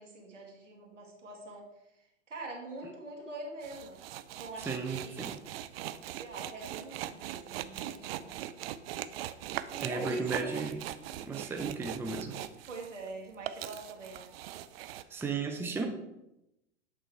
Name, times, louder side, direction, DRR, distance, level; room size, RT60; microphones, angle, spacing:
voice 1, 0.0-1.7 2.3-4.0 4.4-5.3 6.2-8.3 9.7-10.8 11.4-11.6 12.7-14.3, right 3 dB, 85° right, -1 dB, 2.0 m, -44 dB
sound 1, 3.6-13.1 13.3-15.0, right 13 dB, 55° right, 0.5 m, -40 dB
voice 2, 4.7-5.4 9.8-10.8 11.2-12.4 15.1-15.9, right 4 dB, 5° right, 3 dB, 0.6 m, -35 dB
8.1 x 3.8 x 4.5 m, 0.88 s
hypercardioid pair, 110°, 36 cm